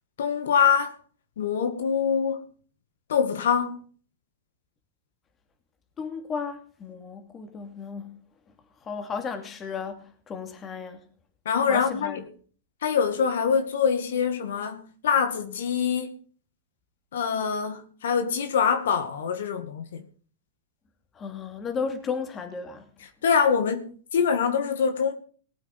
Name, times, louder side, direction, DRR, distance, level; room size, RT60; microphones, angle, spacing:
voice 1, 0.2-1.0 1.4-2.5 3.1-3.8 11.5-12.2 12.8-16.1 17.1-20.0 23.2-25.1, left 6 dB, 75° left, 2.0 m, -24 dB
voice 2, 6.0-8.2 8.8-11.0 11.7-12.2 21.1-22.9, left 5 dB, 25° left, 2.8 m, -34 dB
19.0 x 8.4 x 5.4 m
hypercardioid pair, 120°, 0 cm